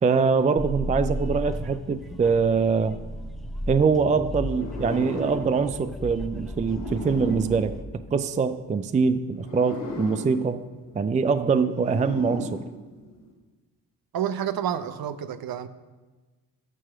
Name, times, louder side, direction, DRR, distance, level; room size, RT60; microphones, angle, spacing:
voice 1, 0.0-3.0 3.7-7.8 8.1-10.6 10.9-12.6, right 5 dB, 15° right, 11 dB, 0.4 m, -23 dB
sound 1, 0.6-7.8, equal, ahead, 0.8 m, -35 dB
sound 2, 4.5-8.6 9.3-13.3, left 1 dB, 75° left, 2.3 m, -37 dB
voice 2, 14.1-15.7, right 9 dB, 50° right, 12 dB, 0.8 m, -29 dB
13.5 x 4.7 x 6.1 m, 1.3 s
hypercardioid pair, 45°, 48 cm